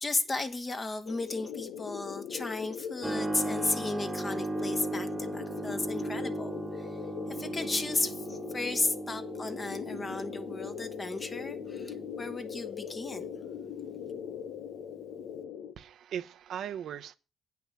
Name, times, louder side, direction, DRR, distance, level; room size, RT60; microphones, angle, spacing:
voice 1, 0.0-7.0 7.3-13.3, left 2 dB, 30° left, 1.4 m, -34 dB
sound 1, 1.1-15.7, left 8 dB, 85° left, 0.7 m, -41 dB
Keyboard (musical), 3.0-15.4, right 2 dB, 15° right, 1.3 m, -38 dB
voice 2, 15.8-17.1, right 9 dB, 70° right, 0.7 m, -38 dB
9.0 x 5.9 x 7.3 m
cardioid pair, 90°, 0 cm